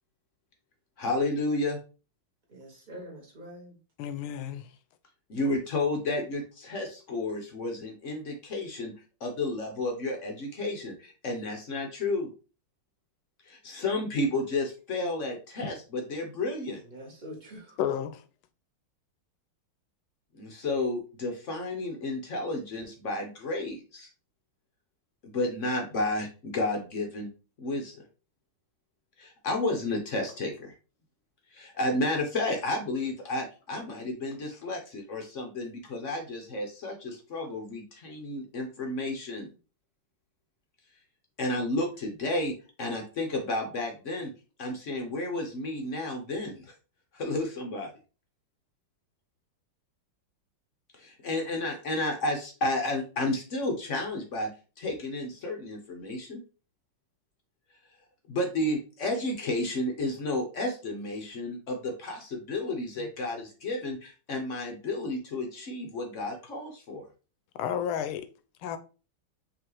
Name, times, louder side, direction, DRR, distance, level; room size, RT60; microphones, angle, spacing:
voice 1, 1.0-1.8 5.3-8.9 9.2-12.3 13.4-16.8 20.3-24.1 25.2-27.3 27.6-28.0 29.2-30.7 31.5-39.5 41.4-44.3 44.6-46.7 47.1-47.9 50.9-54.5 54.8-56.4 58.3-67.1, left 2 dB, 60° left, 0.8 m, -32 dB
voice 2, 2.5-3.8 16.8-17.8, equal, 30° right, 1.1 m, -45 dB
voice 3, 4.0-4.7 17.8-18.2 67.6-68.3 68.6-68.8, left 9 dB, 85° left, 1.4 m, -31 dB
5.0 x 3.0 x 3.0 m
omnidirectional pair, 2.2 m